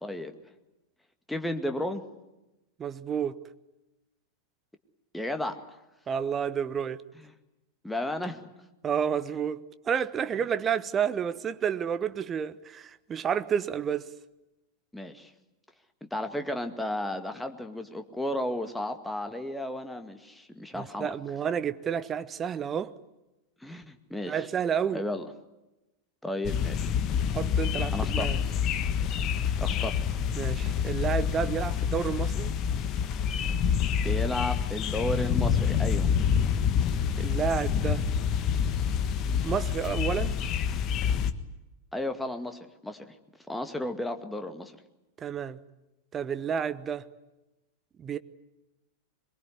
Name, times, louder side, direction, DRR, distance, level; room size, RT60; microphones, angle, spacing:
voice 1, 0.0-0.3 1.3-2.0 5.1-5.7 7.8-8.5 14.9-15.3 16.0-21.1 23.6-24.5 24.9-25.3 26.2-26.9 27.9-28.5 29.6-30.0 34.0-36.1 41.9-43.2 43.5-44.7, left 1 dB, 5° left, 2.1 m, -33 dB
voice 2, 2.8-3.4 6.1-7.0 8.8-14.1 20.8-22.9 24.3-25.0 27.3-28.4 30.4-32.5 37.2-38.0 39.4-40.4 45.2-45.6 46.1-47.1 48.0-48.2, right 7 dB, 25° right, 1.1 m, -30 dB
sound 1, 26.4-41.3, left 7 dB, 35° left, 1.5 m, -27 dB
23.5 x 22.5 x 9.8 m
figure-of-eight pair, 90°, 0 cm